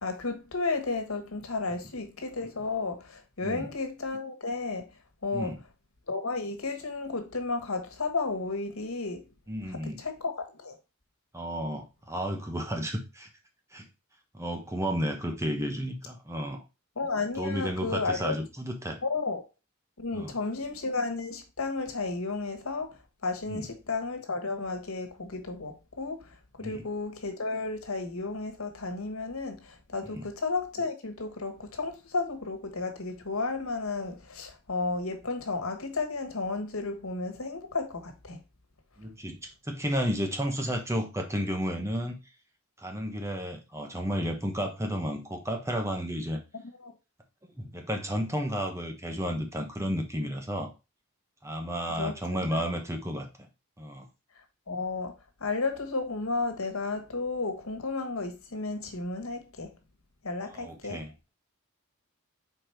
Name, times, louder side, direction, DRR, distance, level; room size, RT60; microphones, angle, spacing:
voice 1, 0.0-4.8 5.2-5.5 6.1-9.2 10.0-10.8 17.0-18.4 19.0-19.4 20.0-22.9 23.2-26.3 26.6-38.4 46.8-46.9 52.0-52.1 52.5-52.6 54.7-55.1 55.4-59.7 60.2-61.0, left 3 dB, 90° left, 1.5 m, -33 dB
voice 2, 9.5-10.0 11.3-13.3 13.7-13.9 14.3-16.6 17.3-19.0 20.1-20.4 23.5-23.7 26.6-26.9 30.0-30.3 39.0-42.2 42.8-46.4 47.4-50.7 51.4-53.5 53.8-54.1 60.4-61.3, equal, 15° right, 1.1 m, -32 dB
5.0 x 4.3 x 4.5 m
head